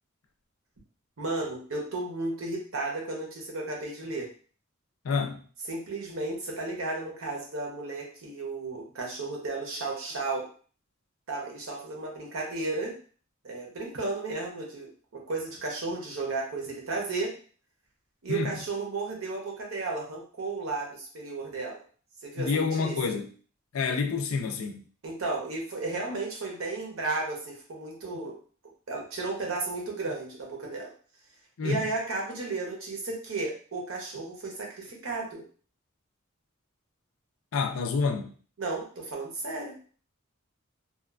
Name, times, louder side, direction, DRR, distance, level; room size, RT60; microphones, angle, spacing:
voice 1, 1.2-4.3 5.7-10.5 11.3-12.9 13.4-17.3 18.2-21.8 22.2-23.2 25.0-28.4 28.9-30.9 31.6-35.4 38.6-39.8, right 3 dB, 75° right, 0.8 m, -34 dB
voice 2, 5.0-5.4 18.3-18.5 22.4-23.3 23.7-24.8 31.6-31.9 37.5-38.3, left 5 dB, 80° left, 0.4 m, -28 dB
2.8 x 2.3 x 2.4 m
head